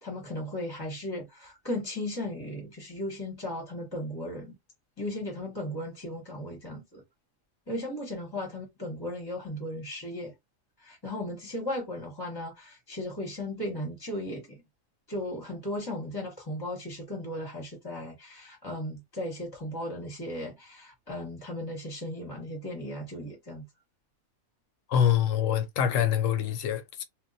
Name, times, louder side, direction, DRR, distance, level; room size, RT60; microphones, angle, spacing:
voice 1, 0.0-4.6 5.0-7.0 7.7-10.3 10.8-14.6 15.1-23.7, left 1 dB, 20° left, 0.8 m, -36 dB
voice 2, 24.9-27.0, left 9 dB, 70° left, 0.9 m, -25 dB
2.3 x 2.1 x 3.9 m
omnidirectional pair, 1.5 m